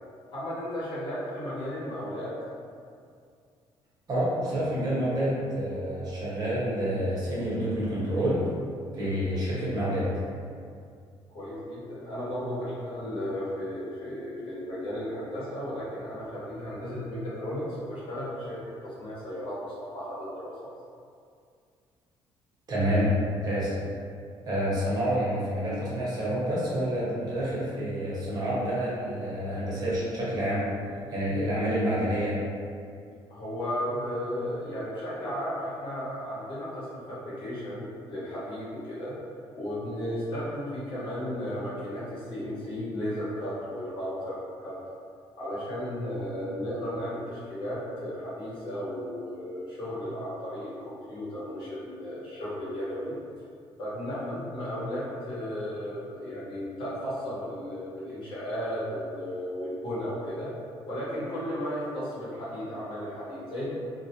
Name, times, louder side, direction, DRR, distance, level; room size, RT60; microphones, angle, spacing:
voice 1, 0.3-2.3 11.3-17.6 17.9-20.7 33.3-39.1 39.5-44.7 45.4-53.1 53.8-60.5 60.9-63.7, equal, 60° left, -9 dB, 0.9 m, -34 dB
voice 2, 4.1-8.4 8.9-10.1 22.7-23.1 23.4-23.7 24.5-30.6 31.1-32.4, equal, 40° right, -8 dB, 0.7 m, -28 dB
2.2 x 2.1 x 2.8 m, 2.3 s
cardioid pair, 145°, 10 cm